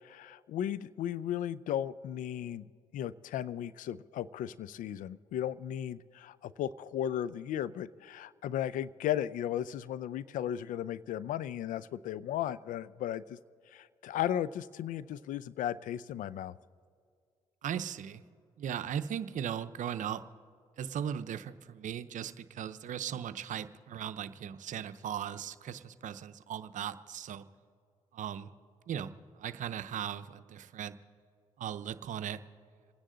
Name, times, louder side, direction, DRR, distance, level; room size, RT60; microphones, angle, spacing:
voice 1, 0.0-2.7 2.9-13.4 13.7-16.6, left 11 dB, 75° left, 19 dB, 0.5 m, -35 dB
voice 2, 17.6-18.2 18.6-20.2 20.8-27.4 28.1-28.5 28.9-31.0 31.6-32.4, right 9 dB, 70° right, 13 dB, 0.7 m, -38 dB
27.5 x 10.0 x 3.9 m, 2.2 s
supercardioid pair, 55°, 14 cm